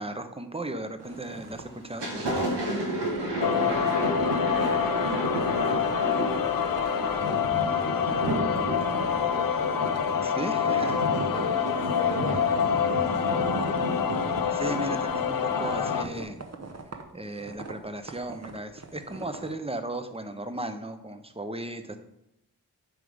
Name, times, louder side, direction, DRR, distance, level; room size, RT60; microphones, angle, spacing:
voice 1, 0.0-2.1 10.2-11.0 14.5-16.4 17.1-22.0, right 1 dB, 15° right, 8 dB, 0.8 m, -35 dB
sound 1, 1.0-8.4 8.7-9.3 9.7-19.5, right 3 dB, 40° right, 1.0 m, -44 dB
Thunder, 1.0-1.4 1.8-16.2, right 1 dB, 90° right, 1.5 m, -32 dB
sound 2, 3.4-16.0, left 8 dB, 55° left, 0.6 m, -27 dB
voice 2, 3.5-10.4 10.7-11.0 11.3-13.5, right 1 dB, 65° right, -6 dB, 2.3 m, -41 dB
7.9 x 3.4 x 5.1 m, 0.81 s
cardioid pair, 40°, 41 cm